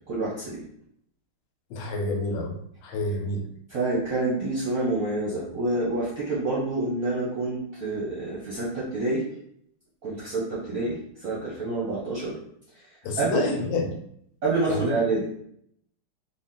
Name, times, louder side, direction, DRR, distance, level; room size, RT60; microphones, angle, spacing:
voice 1, 0.1-0.6 3.7-9.2 10.0-12.4 13.2-13.5 14.4-15.3, right 2 dB, 60° right, -6 dB, 0.9 m, -27 dB
voice 2, 1.7-2.6 2.8-3.5 13.0-14.0 14.7-14.9, left 2 dB, 75° left, 2 dB, 1.4 m, -28 dB
3.9 x 2.2 x 3.7 m, 0.68 s
omnidirectional pair, 2.4 m